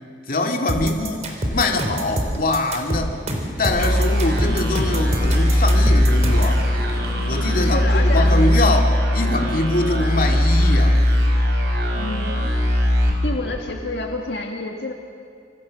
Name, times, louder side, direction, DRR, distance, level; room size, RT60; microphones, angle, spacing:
voice 1, 0.3-3.1 3.6-6.6 7.2-11.0, left 2 dB, 55° left, 2 dB, 2.2 m, -23 dB
sound 1, 0.7-6.6, equal, 40° right, 3.7 m, -25 dB
sound 2, 3.8-14.1, left 1 dB, 70° right, 5.2 m, -19 dB
voice 2, 7.6-8.3 12.0-12.5 13.2-14.9, left 2 dB, 75° left, 2 dB, 1.8 m, -29 dB
26.5 x 25.5 x 6.4 m, 2.2 s
head